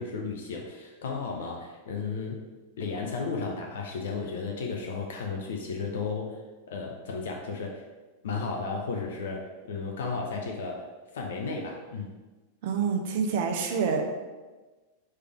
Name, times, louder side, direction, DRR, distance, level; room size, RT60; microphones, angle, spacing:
voice 1, 0.0-2.4 2.8-6.4 6.7-7.8 8.2-10.9 11.1-12.1, left 4 dB, 60° left, 0 dB, 0.5 m, -34 dB
voice 2, 12.6-14.1, right 6 dB, 50° right, 3 dB, 0.6 m, -27 dB
3.4 x 3.3 x 4.7 m, 1.2 s
figure-of-eight pair, 90°, 0 cm